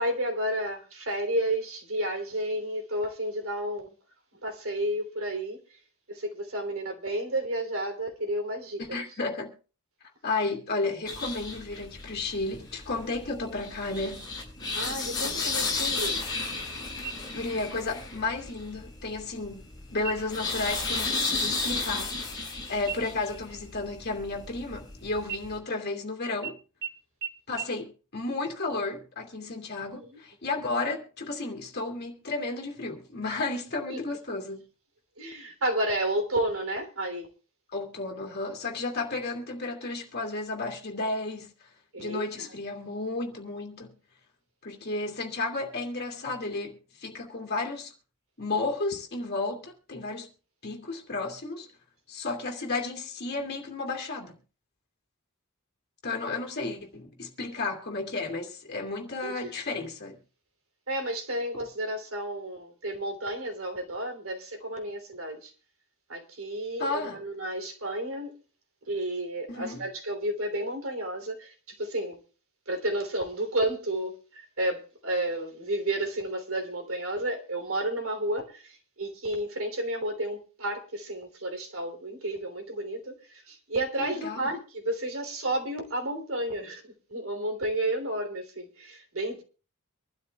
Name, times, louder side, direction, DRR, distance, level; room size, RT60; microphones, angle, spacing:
voice 1, 0.0-3.9 4.4-5.8 6.1-9.0 14.7-16.3 29.9-30.2 33.9-34.0 35.2-37.3 41.9-42.5 59.2-59.5 60.9-65.5 66.1-68.4 68.8-72.2 72.7-89.4, right 1 dB, 70° right, 3.2 m, -32 dB
voice 2, 8.8-9.5 10.2-14.2 17.3-26.6 27.5-34.6 37.7-41.5 42.0-43.9 44.6-47.9 48.4-50.3 50.6-51.7 52.1-54.4 56.0-60.2 66.8-67.2 69.5-69.8 84.0-84.5, left 3 dB, 45° left, 2.5 m, -33 dB
sound 1, 11.1-25.6, left 3 dB, 20° left, 4.8 m, -34 dB
sound 2, 17.0-17.7 18.1-18.2 18.7-19.3 20.0-20.5 20.9-21.1 21.4-22.5 22.9-24.9 25.2-26.0 26.4-26.5 26.8-26.9 27.2-27.3 27.6-27.7, right 8 dB, 55° right, 1.8 m, -40 dB
25.0 x 12.0 x 2.3 m
head